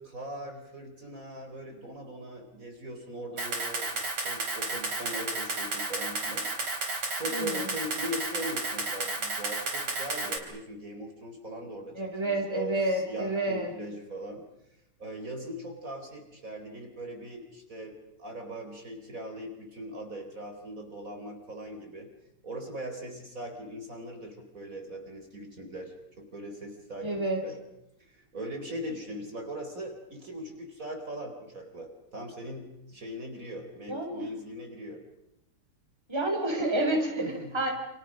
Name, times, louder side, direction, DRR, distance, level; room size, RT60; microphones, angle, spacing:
voice 1, 0.0-3.9 4.1-6.5 6.8-14.4 15.0-22.1 22.4-27.6 28.0-35.0 37.2-37.5, equal, 35° right, 3 dB, 4.7 m, -40 dB
Camera, 3.4-10.4, right 2 dB, 75° right, 5.2 m, -32 dB
voice 2, 7.3-7.7 12.0-13.7 27.0-27.4 33.9-34.3 36.1-37.7, right 1 dB, 10° right, 2 dB, 4.3 m, -29 dB
29.5 x 28.5 x 6.3 m, 0.87 s
omnidirectional pair, 2.4 m